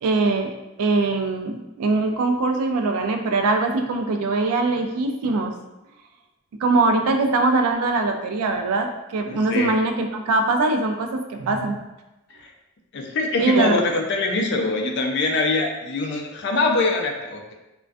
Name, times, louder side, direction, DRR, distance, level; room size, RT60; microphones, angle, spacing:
voice 1, 0.0-5.5 6.6-11.8 13.4-13.8, right 3 dB, 80° right, 5 dB, 0.3 m, -22 dB
voice 2, 9.3-9.7 12.4-12.5 12.9-17.5, left 3 dB, 50° left, 2 dB, 0.3 m, -23 dB
2.4 x 2.2 x 2.3 m, 1.0 s
head